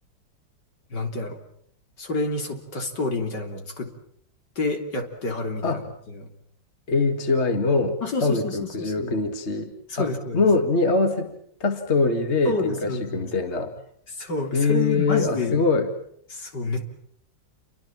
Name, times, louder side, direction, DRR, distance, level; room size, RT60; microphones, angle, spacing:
voice 1, 0.9-1.4 2.0-3.9 4.6-5.8 6.1-6.3 8.0-9.2 9.9-10.4 12.5-13.3 14.2-15.6 16.3-16.8, left 3 dB, 65° left, 4 dB, 4.1 m, -29 dB
voice 2, 6.9-13.7 14.5-15.9, left 3 dB, 35° left, 6 dB, 2.4 m, -23 dB
29.5 x 24.5 x 7.4 m, 0.66 s
omnidirectional pair, 2.0 m